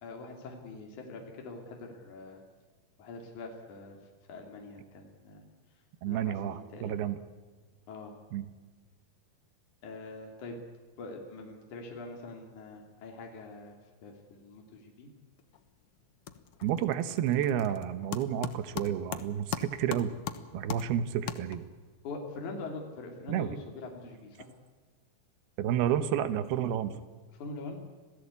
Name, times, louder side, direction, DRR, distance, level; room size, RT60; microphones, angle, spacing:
voice 1, 0.0-2.4 3.0-4.0 4.3-5.4 6.1-7.1 7.9-8.1 9.8-10.6 11.0-13.8 14.0-15.1 22.0-24.5 27.3-27.8, left 3 dB, 55° left, 1 dB, 4.1 m, -43 dB
voice 2, 6.0-7.2 8.3-8.5 16.6-20.1 20.5-21.7 23.3-23.6 25.6-27.0, right 10 dB, 90° right, 12 dB, 3.1 m, -30 dB
sound 1, 15.4-15.8 16.0-21.9, left 9 dB, 80° left, 1.3 m, -40 dB
27.0 x 17.5 x 8.4 m, 1.4 s
omnidirectional pair, 4.4 m